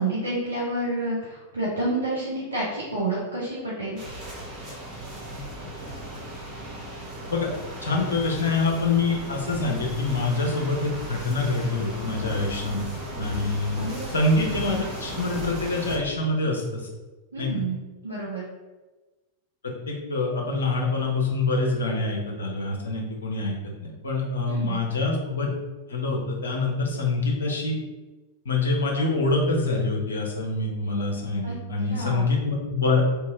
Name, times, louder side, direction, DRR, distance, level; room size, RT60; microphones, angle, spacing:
voice 1, 0.0-4.0 13.8-14.1 17.3-17.8 18.0-18.4 24.4-24.9 31.4-31.5 31.9-32.3, right 2 dB, 75° right, -7 dB, 0.9 m, -29 dB
sound 1, 4.0-16.0, right 1 dB, 35° right, 1.4 m, -36 dB
voice 2, 7.8-12.9 13.2-16.8 17.4-17.5 19.9-23.5 23.8-25.5 25.9-27.8 28.4-33.0, left 3 dB, 70° left, -1 dB, 0.9 m, -25 dB
3.2 x 3.0 x 3.6 m, 1.2 s
figure-of-eight pair, 90°, 0 cm